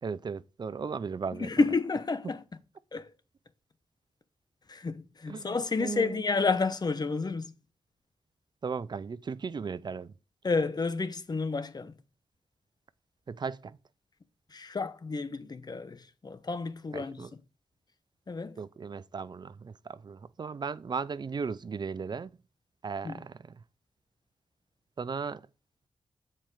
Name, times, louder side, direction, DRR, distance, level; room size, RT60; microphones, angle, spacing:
voice 1, 0.0-1.5 2.2-2.3 5.3-6.3 8.6-10.1 13.3-13.8 16.9-17.3 18.6-22.3 22.8-23.6 25.0-25.4, right 5 dB, 50° right, 0.5 m, -36 dB
voice 2, 1.3-2.4 2.9-3.1 4.7-7.5 10.4-11.9 14.5-17.2 18.3-18.6 23.0-23.2, left 4 dB, 45° left, 1.0 m, -30 dB
7.6 x 4.4 x 4.9 m
supercardioid pair, 40°, 10 cm